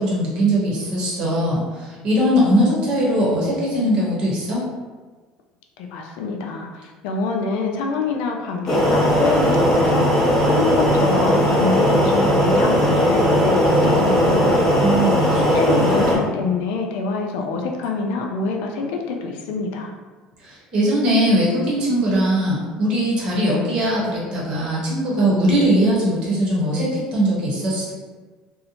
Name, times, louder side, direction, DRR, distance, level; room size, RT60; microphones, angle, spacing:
voice 1, 0.0-4.6 14.8-15.8 20.4-27.9, equal, 40° right, -5 dB, 0.8 m, -20 dB
voice 2, 5.8-14.8 15.3-19.9, left 4 dB, 85° left, 2 dB, 0.4 m, -26 dB
sound 1, 8.7-16.2, equal, 15° left, 0.6 m, -17 dB
2.7 x 2.0 x 2.8 m, 1.4 s
cardioid pair, 165°, 2 cm